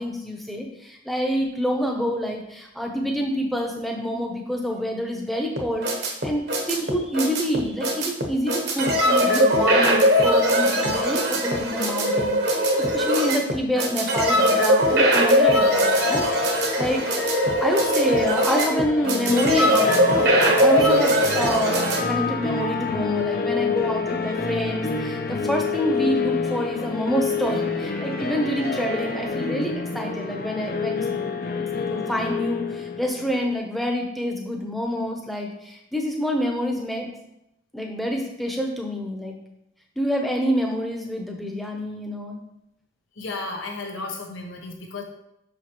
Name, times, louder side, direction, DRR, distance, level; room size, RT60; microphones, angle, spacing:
voice 1, 0.0-17.0 17.6-31.0 31.9-37.1 37.7-39.3 40.0-42.4, equal, ahead, 1 dB, 0.7 m, -27 dB
sound 1, 5.6-22.0, equal, 60° right, 0.9 m, -21 dB
sound 2, 15.4-33.5, left 4 dB, 50° left, 0.6 m, -28 dB
voice 2, 43.2-45.0, left 3 dB, 90° left, 1 dB, 1.1 m, -33 dB
6.3 x 5.1 x 3.1 m, 0.82 s
head